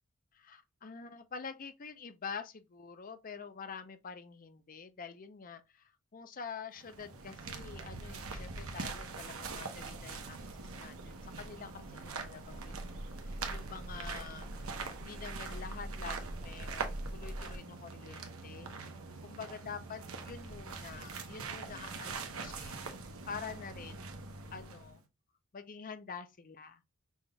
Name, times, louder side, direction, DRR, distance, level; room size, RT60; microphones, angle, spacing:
voice 1, 0.3-18.7 19.2-22.8 23.3-24.1 24.5-25.0 25.5-26.8, left 6 dB, 40° left, 0.6 m, -47 dB
sound 1, 6.7-25.0, right 4 dB, 70° right, 0.9 m, -44 dB
sound 2, 9.3-17.6, right 1 dB, 40° right, 0.7 m, -45 dB
6.1 x 3.6 x 2.2 m
head